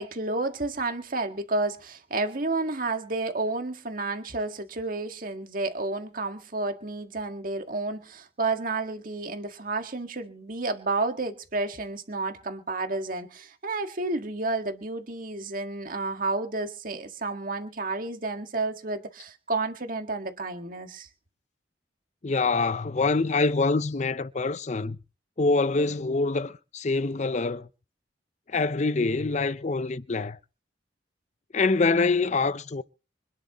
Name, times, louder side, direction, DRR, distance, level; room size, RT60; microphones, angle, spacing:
voice 1, 0.0-21.1, right 3 dB, 50° right, 1.8 m, -31 dB
voice 2, 22.2-25.0 25.4-27.7 28.5-30.4 31.5-32.8, left 3 dB, 40° left, 0.6 m, -25 dB
25.5 x 10.5 x 3.0 m
head